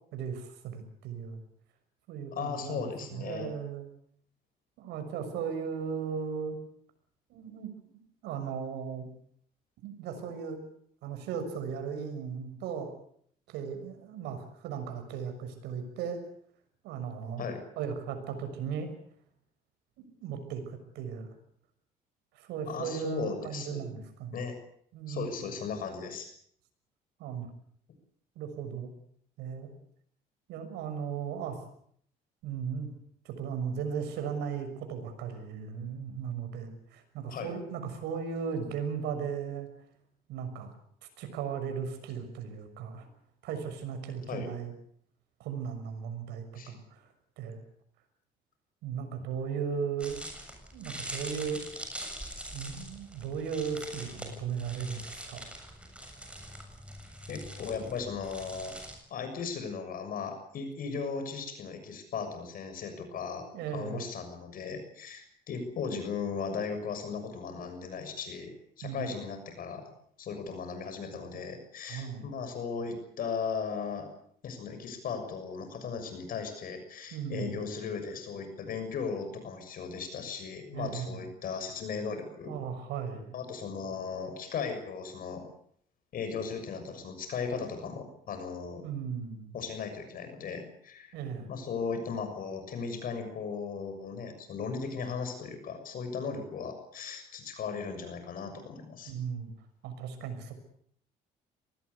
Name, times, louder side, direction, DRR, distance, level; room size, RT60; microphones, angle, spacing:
voice 1, 0.1-1.4 2.1-2.8 3.1-3.9 4.8-6.6 7.3-9.1 9.8-10.6 11.0-12.9 13.5-16.2 16.8-17.4 17.8-18.9 20.0-21.3 22.3-24.4 24.9-25.5 27.2-27.5 28.4-28.9 29.4-29.7 30.5-31.6 32.4-32.9 33.2-39.7 40.3-40.7 41.2-43.1 43.4-44.7 45.4-47.0 47.4-47.6 48.8-50.2 50.7-51.6 52.5-55.4 63.5-64.0 68.8-69.2 71.9-72.3 77.1-77.6 80.7-81.3 82.5-83.3 88.8-89.6 91.1-91.5 99.1-99.5 99.8-100.5, right 7 dB, 85° right, 8 dB, 6.3 m, -36 dB
voice 2, 2.3-3.5 17.4-17.6 22.7-23.8 24.3-24.6 25.1-26.3 37.3-37.5 44.3-44.5 46.5-46.7 57.3-58.8 59.1-63.5 63.7-68.5 68.8-69.9 70.2-74.1 74.4-82.5 83.3-85.4 86.1-88.8 89.5-91.1 91.5-99.1, left 5 dB, 55° left, 7 dB, 6.7 m, -37 dB
sound 1, 50.0-59.0, right 1 dB, 5° right, 7.3 m, -43 dB
24.5 x 19.5 x 8.3 m, 0.64 s
cardioid pair, 110°, 17 cm